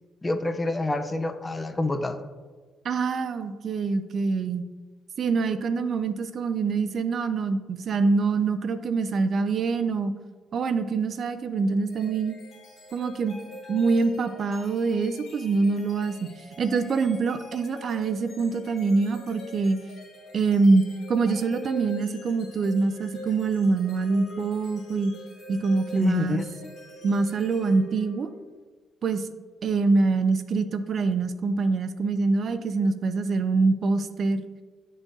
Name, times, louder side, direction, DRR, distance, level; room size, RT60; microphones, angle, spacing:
voice 1, 0.2-2.2 26.0-26.4, left 2 dB, 20° left, 8 dB, 0.5 m, -27 dB
voice 2, 2.8-4.7 5.2-10.1 10.5-12.3 12.9-13.4 13.7-19.8 20.3-25.1 25.5-26.4 27.0-28.3 29.0-29.3 29.6-34.4, right 4 dB, 55° right, 11 dB, 0.4 m, -25 dB
sound 1, 11.9-28.5, left 1 dB, 50° left, 1.7 m, -44 dB
10.5 x 3.7 x 2.6 m, 1.4 s
cardioid pair, 90°, 0 cm